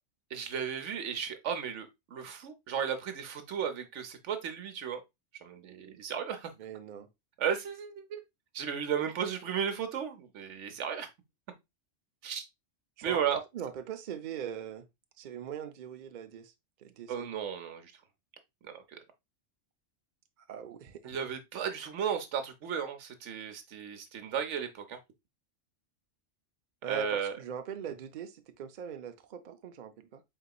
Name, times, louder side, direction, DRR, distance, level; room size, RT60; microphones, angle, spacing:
voice 1, 0.3-5.0 5.4-6.5 7.4-8.2 8.5-11.1 12.2-12.4 13.0-13.4 17.1-17.9 18.6-19.0 21.0-25.0 26.9-27.3, right 8 dB, 75° right, 1.1 m, -34 dB
voice 2, 6.6-7.1 13.0-14.9 15.2-16.5 16.8-17.3 20.5-21.2 26.8-30.2, right 8 dB, 55° right, 0.5 m, -41 dB
4.5 x 3.9 x 2.3 m
omnidirectional pair, 1.2 m